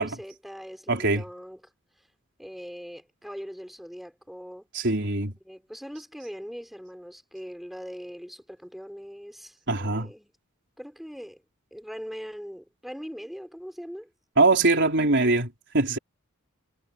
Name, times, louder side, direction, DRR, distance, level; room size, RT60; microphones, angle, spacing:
voice 1, 0.0-1.6 2.4-4.7 5.4-10.3 10.8-11.4 11.7-14.1, equal, ahead, 6.7 m, -41 dB
voice 2, 0.9-1.2 4.7-5.3 9.7-10.1 14.4-16.0, right 3 dB, 55° right, 4.6 m, -22 dB
head